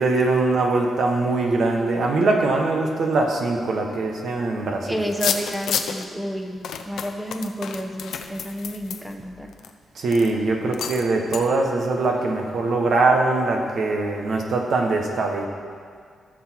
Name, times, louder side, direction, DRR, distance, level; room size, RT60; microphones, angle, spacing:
voice 1, 0.0-5.0 9.9-15.5, right 3 dB, 65° right, 2 dB, 1.5 m, -22 dB
voice 2, 4.9-9.5, equal, 10° right, 3 dB, 1.0 m, -30 dB
sound 1, 5.1-6.1 6.6-9.7 10.1-10.3 10.7-11.1 11.3-11.4, left 7 dB, 85° left, 0.7 m, -29 dB
14.5 x 6.4 x 4.6 m, 2.1 s
cardioid pair, 95°, 0 cm